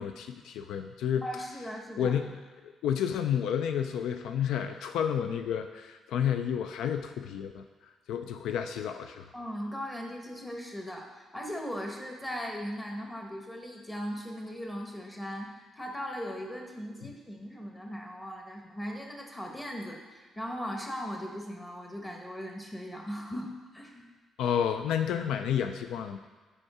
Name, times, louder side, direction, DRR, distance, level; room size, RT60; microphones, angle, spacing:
voice 1, 0.0-1.2 2.0-7.6 8.1-9.3 24.4-26.2, left 8 dB, 85° left, 7 dB, 0.3 m, -30 dB
voice 2, 1.2-2.1 9.3-24.1, equal, 10° left, 1 dB, 1.1 m, -38 dB
5.2 x 4.7 x 4.8 m, 1.3 s
cardioid pair, 90°, 0 cm